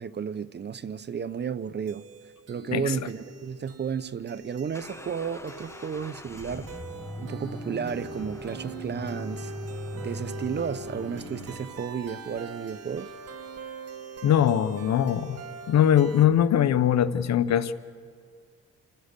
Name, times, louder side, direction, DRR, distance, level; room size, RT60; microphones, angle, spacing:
voice 1, 0.0-2.1 2.5-6.7 7.2-9.5 9.9-13.1, right 7 dB, 35° right, 0.7 m, -33 dB
sound 1, 1.9-16.2, right 5 dB, 55° right, 1.8 m, -43 dB
sound 2, 3.7-11.6, left 2 dB, 10° left, 1.2 m, -40 dB
voice 2, 14.2-15.4 15.7-17.7, left 10 dB, 60° left, 1.0 m, -21 dB
28.5 x 15.0 x 6.7 m
cardioid pair, 90°, 30 cm